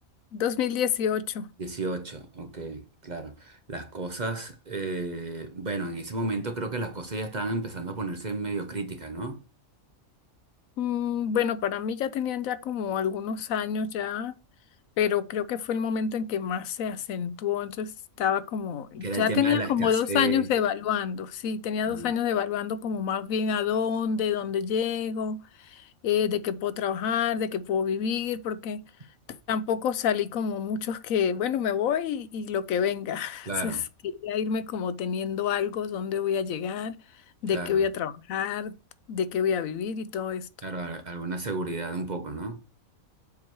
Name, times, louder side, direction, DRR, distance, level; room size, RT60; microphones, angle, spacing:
voice 1, 0.3-1.5 10.8-14.3 15.0-17.9 18.2-28.8 29.3-33.8 34.2-37.0 37.4-38.7 39.1-40.5, left 8 dB, 80° left, 1.0 m, -28 dB
voice 2, 1.6-9.4 19.0-20.5 21.9-22.1 33.5-33.8 37.5-37.8 40.6-42.6, right 2 dB, 40° right, 0.8 m, -32 dB
7.3 x 4.5 x 4.6 m
omnidirectional pair, 1.4 m